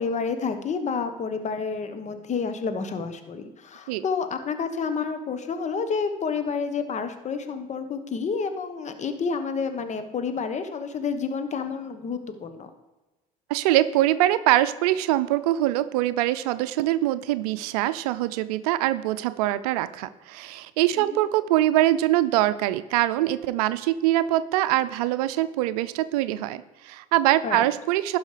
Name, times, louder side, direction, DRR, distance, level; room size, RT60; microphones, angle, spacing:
voice 1, 0.0-12.7 21.0-21.2 27.4-27.7, left 5 dB, 40° left, 9 dB, 1.2 m, -29 dB
voice 2, 13.5-28.2, right 14 dB, 85° right, 14 dB, 0.5 m, -23 dB
11.5 x 5.5 x 5.0 m, 1.1 s
hypercardioid pair, 75°, 19 cm